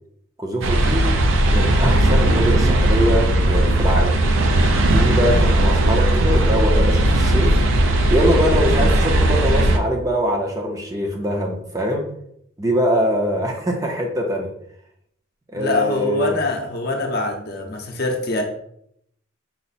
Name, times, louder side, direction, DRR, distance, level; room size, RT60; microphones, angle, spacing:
voice 1, 0.4-1.1 1.5-4.2 4.8-7.5 8.1-12.1 12.6-14.5 15.5-16.4, equal, 15° right, 1 dB, 0.5 m, -23 dB
sound 1, 0.6-9.8, right 1 dB, 65° right, 0.5 m, -17 dB
voice 2, 15.5-18.4, left 2 dB, 45° left, 2 dB, 0.7 m, -24 dB
5.6 x 2.0 x 4.1 m, 0.72 s
head